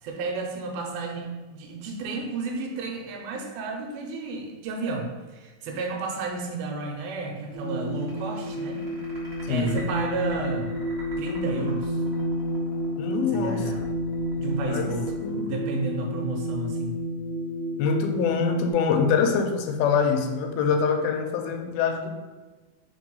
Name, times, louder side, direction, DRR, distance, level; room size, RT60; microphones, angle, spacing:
voice 1, 0.0-8.9 9.5-10.8 11.2-12.0 13.3-13.8 14.4-17.0, right 3 dB, 80° right, 2 dB, 2.4 m, -32 dB
sound 1, 7.5-18.7, equal, 50° right, 1.2 m, -30 dB
sound 2, 7.6-16.2, right 1 dB, 30° right, 1.2 m, -46 dB
voice 2, 9.5-9.8 13.0-13.6 14.7-15.0 15.2-15.9 17.8-22.1, left 5 dB, 85° left, 5 dB, 2.3 m, -25 dB
5.1 x 3.7 x 5.3 m, 1.2 s
omnidirectional pair, 4.4 m